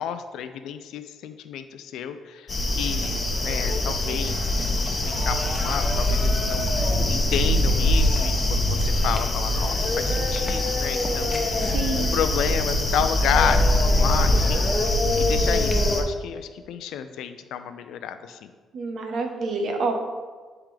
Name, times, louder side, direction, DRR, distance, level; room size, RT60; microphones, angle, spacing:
voice 1, 0.0-14.7 15.2-18.5, left 8 dB, 85° left, 10 dB, 0.4 m, -31 dB
sound 1, 2.5-16.0, left 1 dB, 30° left, 0.9 m, -23 dB
voice 2, 11.7-12.2 18.7-19.9, right 3 dB, 65° right, 4 dB, 0.9 m, -27 dB
10.5 x 3.6 x 3.3 m, 1.5 s
cardioid pair, 90°, 0 cm